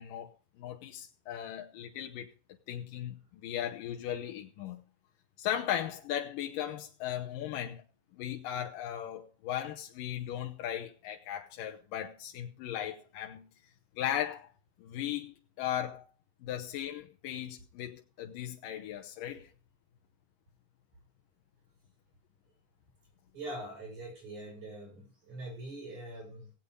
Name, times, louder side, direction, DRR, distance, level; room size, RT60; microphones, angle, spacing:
voice 1, 0.0-2.3 2.7-4.8 5.4-7.8 8.2-13.5 14.0-14.5 14.8-16.1 16.4-19.5, left 11 dB, 90° left, 2.7 m, -37 dB
voice 2, 23.3-26.5, right 1 dB, 60° right, 8.6 m, -43 dB
17.5 x 8.6 x 5.4 m
omnidirectional pair, 3.8 m